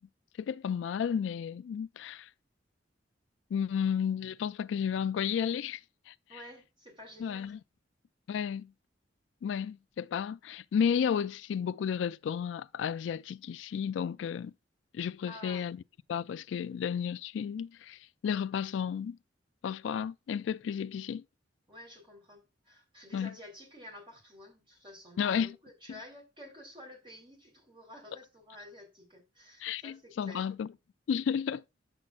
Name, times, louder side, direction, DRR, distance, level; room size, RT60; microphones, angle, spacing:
voice 1, 0.4-2.3 3.5-5.8 6.1-6.2 7.2-7.6 8.3-8.7 9.4-14.5 14.9-15.8 16.1-19.2 19.6-21.2 23.1-23.3 25.2-25.6 29.6-30.7 31.1-31.6, left 7 dB, 80° left, 0.3 m, -32 dB
voice 2, 6.3-7.5 15.3-15.7 21.7-30.5, left 1 dB, 30° right, 3.8 m, -50 dB
9.6 x 7.6 x 2.4 m
head